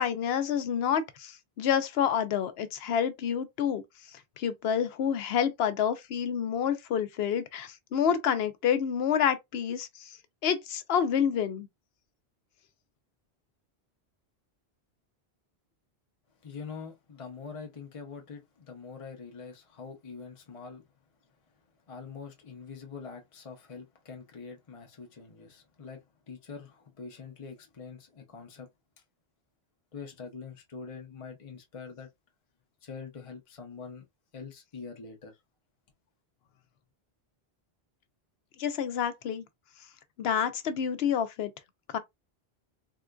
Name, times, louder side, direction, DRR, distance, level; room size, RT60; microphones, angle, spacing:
voice 1, 0.0-3.8 4.4-10.1 10.4-11.7 38.6-39.4 40.2-41.5 41.9-42.0, left 8 dB, 75° left, 0.8 m, -28 dB
voice 2, 16.4-20.9 21.9-28.7 29.9-32.1 32.8-34.0 34.3-35.4, left 5 dB, 35° left, 0.7 m, -44 dB
3.7 x 2.4 x 2.2 m
omnidirectional pair, 1.1 m